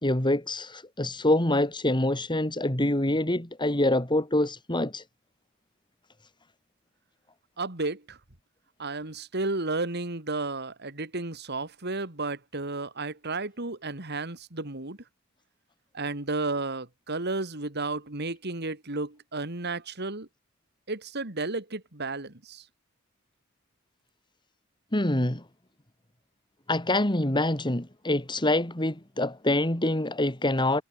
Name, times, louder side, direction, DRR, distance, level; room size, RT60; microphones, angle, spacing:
voice 1, 0.0-5.0 24.9-25.4 26.7-30.8, left 1 dB, 25° left, 3.0 m, -25 dB
voice 2, 7.6-8.2 8.8-15.0 15.9-20.3 20.9-22.6, right 3 dB, 55° right, 3.2 m, -32 dB
head